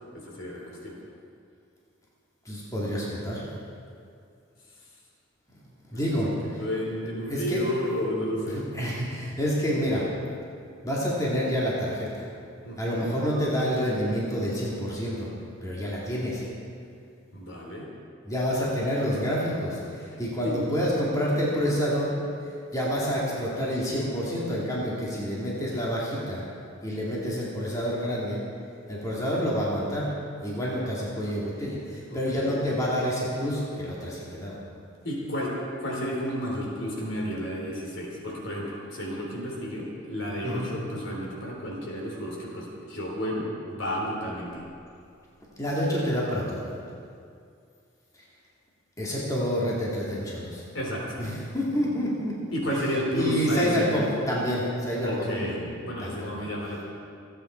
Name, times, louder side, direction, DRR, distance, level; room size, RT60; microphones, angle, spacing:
voice 1, 0.1-1.0 5.9-8.6 12.6-13.1 17.3-17.9 20.4-20.5 32.1-32.6 35.0-44.6 50.7-51.2 52.5-54.0 55.0-55.6 55.9-56.8, equal, 70° left, -2 dB, 3.7 m, -32 dB
voice 2, 2.4-3.5 5.9-6.6 7.3-7.6 8.4-10.1 10.8-12.3 12.8-15.3 15.6-16.4 18.2-22.2 22.7-26.4 26.8-28.4 28.9-30.1 30.4-34.6 40.4-40.7 45.6-46.6 49.0-50.6 51.2-52.3 52.7-56.4, equal, 15° left, -6 dB, 2.5 m, -28 dB
27.0 x 9.3 x 4.5 m, 2.4 s
head